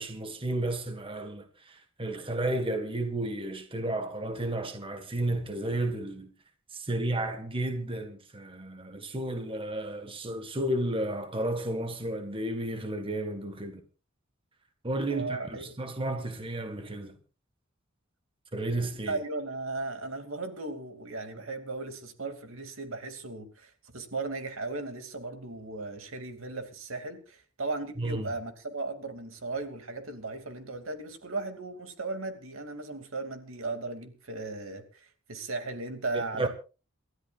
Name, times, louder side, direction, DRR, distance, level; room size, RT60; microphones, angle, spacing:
voice 1, 0.0-6.3 6.7-13.8 14.8-17.1 18.5-19.2 28.0-28.3 36.1-36.5, right 1 dB, 25° right, 1.6 m, -32 dB
voice 2, 15.1-15.7 19.1-36.5, right 3 dB, 85° right, 2.6 m, -36 dB
28.5 x 13.0 x 2.5 m
head